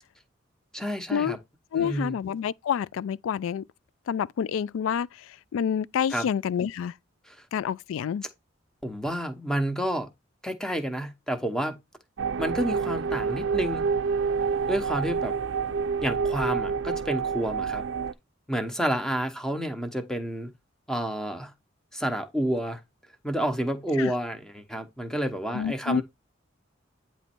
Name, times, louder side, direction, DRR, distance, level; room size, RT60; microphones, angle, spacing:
voice 1, 0.7-1.4 1.7-2.1 6.1-6.3 7.3-7.4 8.8-10.1 10.4-11.7 12.4-13.9 14.7-15.3 16.0-17.8 18.5-20.5 20.9-21.5 21.9-22.8 23.2-26.0, equal, 5° left, 0.9 m, -29 dB
voice 2, 1.7-3.6 4.1-5.1 5.5-6.9 7.5-8.2 24.0-24.1 25.5-26.0, left 8 dB, 90° left, 0.3 m, -28 dB
sound 1, 12.2-18.1, right 5 dB, 65° right, 0.4 m, -28 dB
9.1 x 3.1 x 4.4 m
head